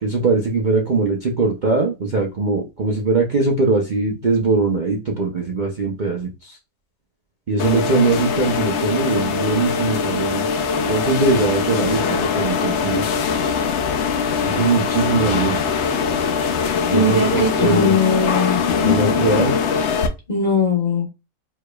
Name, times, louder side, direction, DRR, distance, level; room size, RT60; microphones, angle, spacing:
voice 1, 0.0-6.6 7.5-10.4 10.7-13.1 14.5-15.6 16.9-18.0 18.8-19.5, right 3 dB, 80° right, 0.4 m, -21 dB
sound 1, 7.6-20.1, left 6 dB, 80° left, 0.6 m, -21 dB
voice 2, 16.9-18.6 20.3-21.1, left 2 dB, 30° left, 1.0 m, -19 dB
4.8 x 3.4 x 2.3 m
omnidirectional pair, 1.8 m